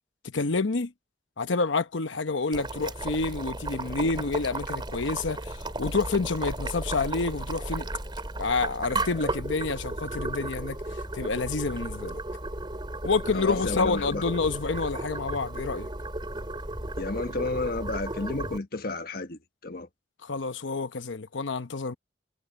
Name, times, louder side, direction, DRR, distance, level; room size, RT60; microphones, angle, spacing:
voice 1, 0.2-0.9 1.4-7.9 8.4-10.8 11.1-12.2 13.0-15.9 20.2-22.0, left 4 dB, 90° left, 0.9 m, -28 dB
Boiling, 2.5-18.6, right 2 dB, 25° right, 3.6 m, -34 dB
voice 2, 13.3-14.2 17.0-19.9, left 2 dB, 55° left, 1.5 m, -32 dB
head